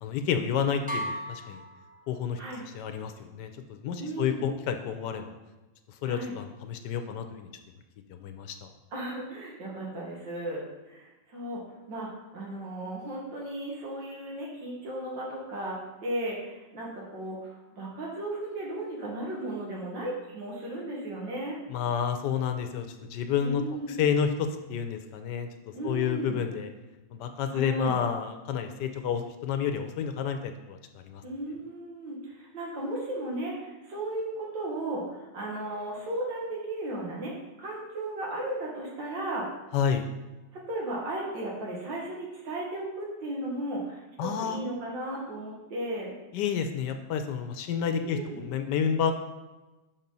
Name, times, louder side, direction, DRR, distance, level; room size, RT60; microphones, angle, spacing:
voice 1, 0.0-1.6 2.1-2.4 2.7-5.3 6.0-7.5 8.1-8.7 21.7-23.6 24.0-25.5 25.8-26.7 27.1-31.2 39.7-40.1 44.2-44.6 46.3-49.1, left 7 dB, 75° left, 7 dB, 1.2 m, -30 dB
sound 1, 0.9-2.7, equal, 15° right, 0.3 m, -37 dB
voice 2, 4.0-4.5 6.0-6.4 8.9-11.6 11.9-12.1 12.3-15.8 16.0-21.6 23.4-23.9 25.7-26.4 27.5-28.0 31.2-37.3 37.6-39.5 40.5-46.1 48.0-48.4, right 1 dB, 90° right, -3 dB, 2.3 m, -35 dB
5.9 x 4.3 x 5.3 m, 1.1 s
omnidirectional pair, 1.9 m